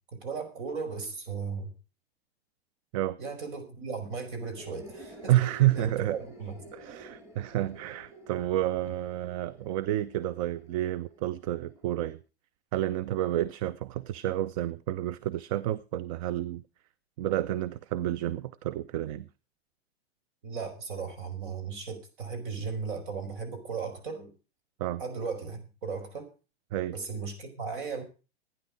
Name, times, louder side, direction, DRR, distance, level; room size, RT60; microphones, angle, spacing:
voice 1, 0.1-1.7 3.2-5.3 5.7-6.6 20.4-24.3 25.0-26.3 26.9-28.0, right 5 dB, 50° right, 5.3 m, -36 dB
sound 1, 4.6-12.1, right 1 dB, 10° right, 4.3 m, -50 dB
voice 2, 5.3-6.2 6.7-12.2 12.7-16.6 17.2-19.3 24.8-25.0 26.7-27.0, right 13 dB, 35° right, 0.6 m, -30 dB
15.5 x 10.0 x 4.9 m
figure-of-eight pair, 100°, 32 cm